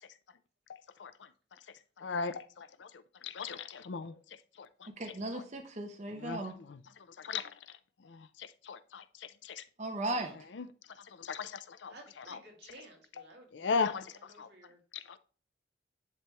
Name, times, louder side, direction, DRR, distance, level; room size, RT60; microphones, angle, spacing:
voice 1, 2.0-2.9 3.2-4.1 6.2-6.4 6.7-6.8 7.2-7.5 8.7-9.0 9.4-9.6 10.5-10.7 11.2-11.9 12.3-12.4 13.5-14.0 14.4-14.5 14.9-15.2, left 5 dB, 75° left, 0.5 m, -36 dB
voice 2, 5.0-6.5 9.8-10.3, right 2 dB, 40° right, 0.8 m, -36 dB
voice 3, 11.9-14.8, right 2 dB, 65° right, 2.1 m, -55 dB
10.0 x 3.5 x 3.0 m
head